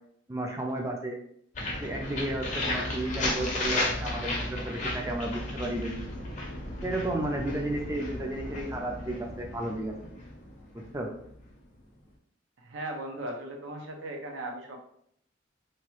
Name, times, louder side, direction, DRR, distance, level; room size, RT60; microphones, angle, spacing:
voice 1, 0.3-1.2 1.8-5.9 6.8-9.9 10.7-11.1, right 1 dB, 15° right, 1 dB, 0.3 m, -33 dB
sound 1, 1.5-11.4, left 2 dB, 40° left, 0.5 m, -34 dB
voice 2, 12.6-14.8, right 1 dB, 90° right, 2 dB, 0.6 m, -37 dB
2.9 x 2.3 x 3.0 m, 0.69 s
head